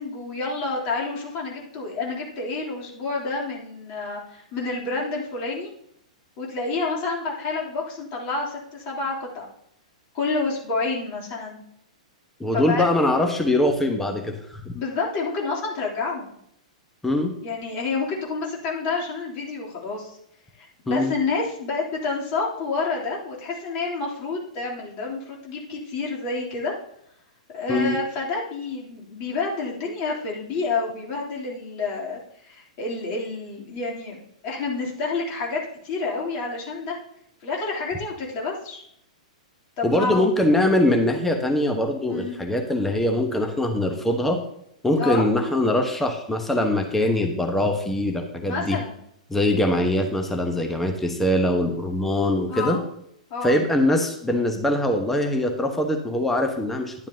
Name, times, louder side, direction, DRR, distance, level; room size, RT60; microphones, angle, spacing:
voice 1, 0.0-5.7 6.4-9.4 10.1-11.6 12.5-12.8 14.7-16.3 17.4-20.2 20.6-26.7 27.5-36.9 37.4-38.8 39.8-40.3 42.1-42.4 45.0-45.2 48.4-49.0 52.5-52.8 53.3-53.5, left 3 dB, 35° left, -3 dB, 3.3 m, -29 dB
voice 2, 12.4-14.7 17.0-17.3 20.9-21.1 27.7-28.0 39.8-44.4 44.8-48.8 49.3-52.8 53.4-56.9, left 1 dB, 5° left, 4 dB, 1.1 m, -22 dB
11.0 x 10.5 x 2.8 m, 0.73 s
figure-of-eight pair, 105°, 4 cm